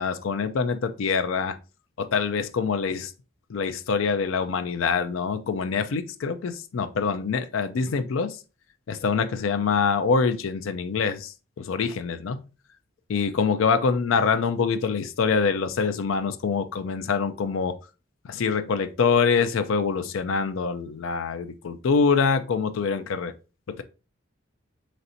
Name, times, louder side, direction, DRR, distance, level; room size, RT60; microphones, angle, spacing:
voice 1, 0.0-1.6 2.0-3.1 3.5-8.4 8.9-12.4 13.1-17.7 18.3-23.3 23.7-23.8, left 5 dB, 75° left, 0.4 m, -25 dB
4.1 x 3.2 x 2.6 m
head